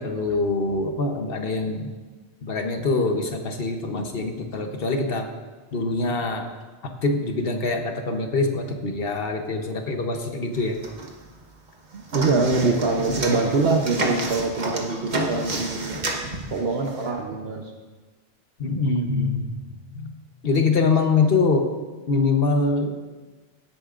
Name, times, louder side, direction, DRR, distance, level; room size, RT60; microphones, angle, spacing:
voice 1, 0.0-1.9 2.4-5.3 5.7-6.5 6.8-10.8 18.6-19.5 19.9-20.1 20.4-21.7 22.1-22.9, left 3 dB, 55° left, 4 dB, 1.1 m, -24 dB
sound 1, 10.5-11.4 11.7-17.1, right 2 dB, 40° right, 1.2 m, -30 dB
voice 2, 11.9-17.6, right 3 dB, 60° right, 2 dB, 1.0 m, -24 dB
16.5 x 8.4 x 2.5 m, 1.3 s
omnidirectional pair, 1.2 m